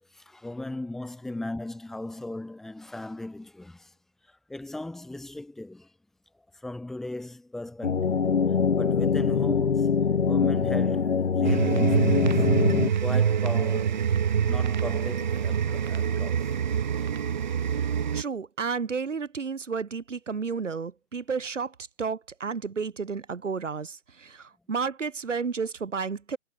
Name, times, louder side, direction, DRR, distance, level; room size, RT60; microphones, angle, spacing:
voice 1, 0.1-3.9 4.3-5.9 6.5-8.2 8.8-9.9 10.2-12.5 13.0-14.1 14.4-16.5 17.0-17.1, left 2 dB, ahead, 1.0 m, -38 dB
sound 1, 7.8-12.9, left 6 dB, 75° left, 4.0 m, -23 dB
sound 2, 11.4-18.2, right 8 dB, 40° right, 0.7 m, -25 dB
voice 2, 18.1-26.4, right 5 dB, 85° right, 4.3 m, -32 dB
hypercardioid pair, 165°, 36 cm